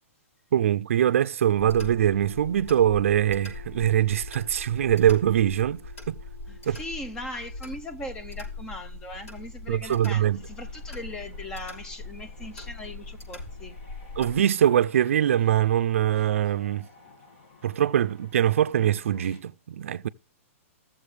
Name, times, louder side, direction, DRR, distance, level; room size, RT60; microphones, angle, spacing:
voice 1, 0.5-6.2 6.7-6.8 9.7-10.4 14.2-16.9 17.6-20.1, right 10 dB, 65° right, 0.5 m, -23 dB
sound 1, 1.6-14.4, left 3 dB, 85° left, 5.6 m, -41 dB
voice 2, 6.5-13.7, left 1 dB, 10° left, 0.6 m, -39 dB
sound 2, 10.2-19.4, left 3 dB, 40° left, 2.0 m, -54 dB
15.5 x 7.3 x 3.2 m
hypercardioid pair, 175°, 8 cm